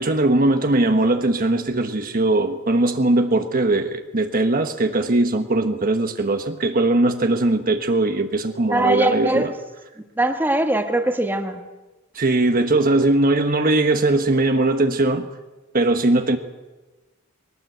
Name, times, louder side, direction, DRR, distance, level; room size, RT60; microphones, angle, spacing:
voice 1, 0.0-9.5 12.1-15.3 15.7-16.4, right 2 dB, 40° right, 6 dB, 1.2 m, -20 dB
voice 2, 8.7-9.5 10.2-11.6, right 1 dB, 10° right, 5 dB, 1.6 m, -21 dB
21.5 x 18.5 x 8.0 m, 1.1 s
head